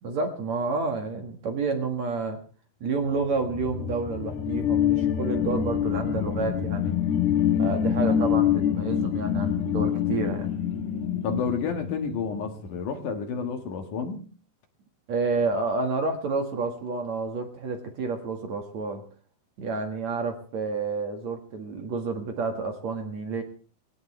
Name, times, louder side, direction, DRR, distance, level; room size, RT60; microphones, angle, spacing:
voice 1, 0.0-2.4 2.8-7.0 7.6-10.5 15.1-19.0 19.6-23.4, right 4 dB, 55° right, 5 dB, 2.6 m, -29 dB
sound 1, 3.2-12.5, left 9 dB, 75° left, 3.1 m, -26 dB
voice 2, 11.2-14.2, left 5 dB, 60° left, 5 dB, 2.9 m, -30 dB
21.0 x 17.5 x 3.3 m, 0.41 s
omnidirectional pair, 4.5 m